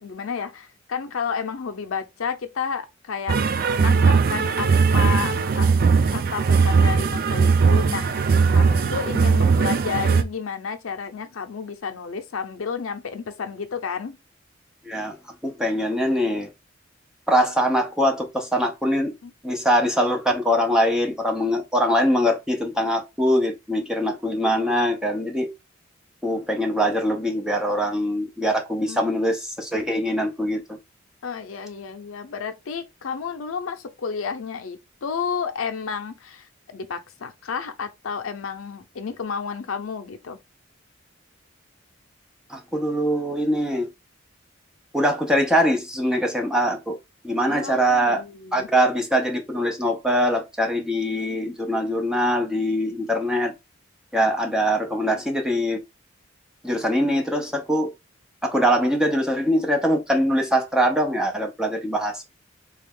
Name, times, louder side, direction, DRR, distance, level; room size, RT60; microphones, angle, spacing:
voice 1, 0.0-3.4 3.8-4.7 4.9-5.7 6.1-8.3 8.5-14.2 19.2-19.3 28.8-29.2 31.2-40.4 47.5-48.7, left 6 dB, 90° left, 0.5 m, -31 dB
sound 1, 3.3-10.2, right 5 dB, 45° right, 0.3 m, -19 dB
voice 2, 14.8-15.2 15.4-16.5 17.3-19.1 19.4-25.5 26.2-30.8 42.5-43.9 44.9-47.0 47.2-48.2 48.5-53.5 54.1-55.8 56.6-57.9 58.4-62.3, equal, 5° right, 0.6 m, -23 dB
3.3 x 2.3 x 3.5 m
head